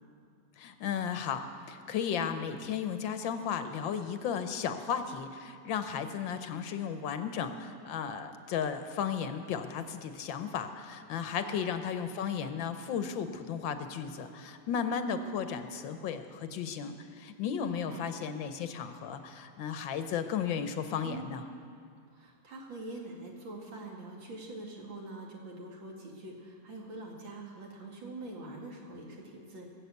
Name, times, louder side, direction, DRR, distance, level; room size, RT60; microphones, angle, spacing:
voice 1, 0.6-1.4 1.7-21.4, left 7 dB, 85° left, 9 dB, 1.6 m, -34 dB
voice 2, 17.6-18.0 21.0-21.3 22.1-29.7, right 2 dB, 80° right, -1 dB, 2.8 m, -44 dB
18.5 x 7.6 x 8.2 m, 2.3 s
omnidirectional pair, 2.1 m